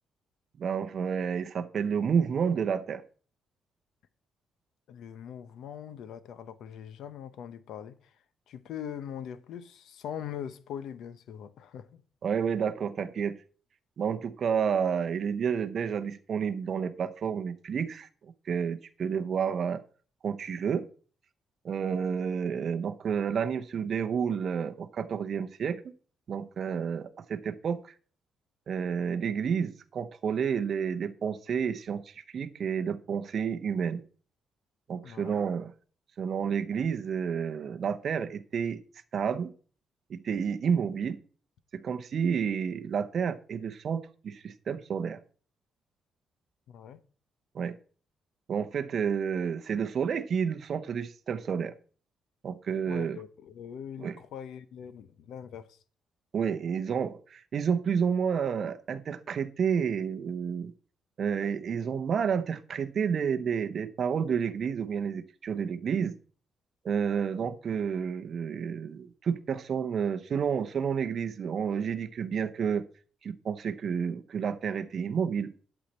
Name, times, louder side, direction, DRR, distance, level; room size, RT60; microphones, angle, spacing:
voice 1, 0.6-3.0 12.2-13.4 14.0-18.1 18.5-19.8 20.2-20.8 21.6-25.8 26.3-27.9 28.7-34.0 34.9-35.7 36.2-38.8 39.1-39.5 40.1-41.2 41.7-45.2 47.5-47.8 48.5-51.7 52.4-53.2 54.0-54.2 56.3-60.7 61.2-66.1 66.8-72.8 73.2-75.5, right 7 dB, 40° right, 0.7 m, -30 dB
voice 2, 4.9-8.0 8.5-12.0 35.0-35.5 46.7-47.0 52.9-55.8 67.4-67.8, left 9 dB, 75° left, 0.9 m, -42 dB
12.0 x 7.3 x 4.2 m
cardioid pair, 165°, 0 cm